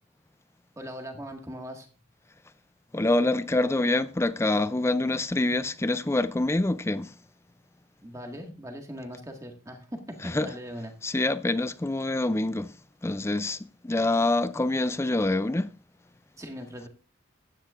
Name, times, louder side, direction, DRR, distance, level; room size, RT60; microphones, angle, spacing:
voice 1, 0.8-1.9 8.0-9.9 10.2-10.9 16.4-16.9, equal, 15° right, 1.8 m, -40 dB
voice 2, 2.9-7.1 10.2-10.5 11.0-12.7 13.0-15.7, left 2 dB, 15° left, 0.4 m, -26 dB
15.0 x 9.9 x 2.5 m
head